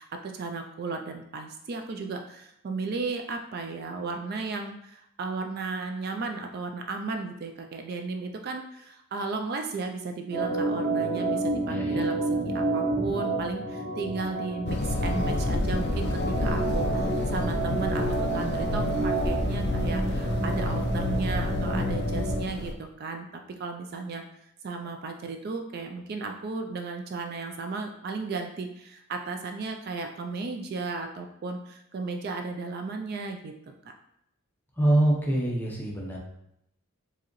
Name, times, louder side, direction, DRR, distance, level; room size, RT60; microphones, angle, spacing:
voice 1, 0.0-23.3 23.6-24.2 24.6-33.7, right 4 dB, 45° right, 5 dB, 0.3 m, -35 dB
Organ, 10.3-22.5, right 1 dB, 75° right, 1.0 m, -29 dB
voice 2, 11.7-12.0 34.8-36.2, right 1 dB, 10° left, -3 dB, 0.7 m, -25 dB
sound 1, 14.6-22.7, left 1 dB, 50° left, 0.4 m, -30 dB
4.7 x 2.8 x 3.0 m, 0.78 s
head